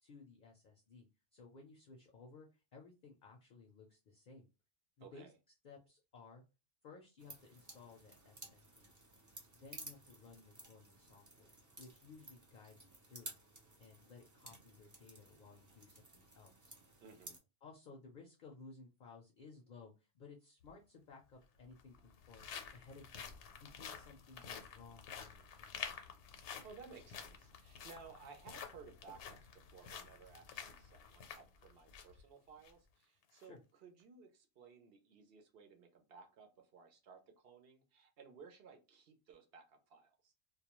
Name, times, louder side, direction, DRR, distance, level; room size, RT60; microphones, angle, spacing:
voice 1, 0.0-4.5 5.0-5.3 5.6-6.4 6.8-8.9 9.5-13.3 13.8-16.8 17.6-26.0 33.4-33.6, left 4 dB, 55° left, 0.6 m, -58 dB
voice 2, 5.0-5.3 17.0-17.4 26.6-29.4 29.7-40.3, right 5 dB, 65° right, 0.8 m, -58 dB
sound 1, 7.2-17.4, right 2 dB, 25° right, 0.4 m, -56 dB
sound 2, 20.6-20.7 21.6-32.2 32.6-32.7 33.2-33.4, left 7 dB, 80° left, 0.9 m, -50 dB
2.3 x 2.2 x 2.9 m
omnidirectional pair, 1.2 m